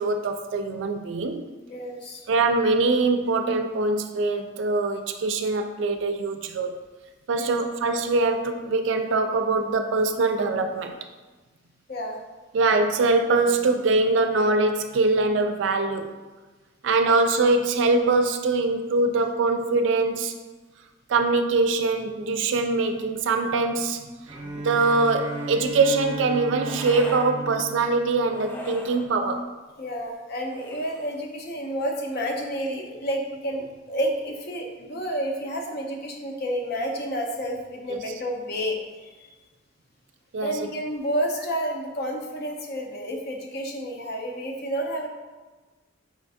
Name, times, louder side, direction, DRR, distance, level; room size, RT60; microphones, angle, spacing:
voice 1, 0.0-1.5 2.3-6.7 7.3-11.0 12.5-16.1 16.8-20.3 21.1-24.0 24.5-29.5 40.3-40.5, right 3 dB, 70° right, 6 dB, 0.4 m, -23 dB
voice 2, 1.7-2.2 7.4-7.6 11.9-12.2 17.0-17.1 29.8-39.3 40.4-45.1, equal, 55° left, 2 dB, 0.6 m, -30 dB
Bowed string instrument, 24.3-29.2, right 2 dB, 35° right, 0.6 m, -36 dB
sound 1, 24.9-25.7 26.6-27.3 28.2-29.1 30.4-31.3, left 1 dB, 10° left, 0.3 m, -41 dB
5.0 x 3.2 x 2.7 m, 1.3 s
head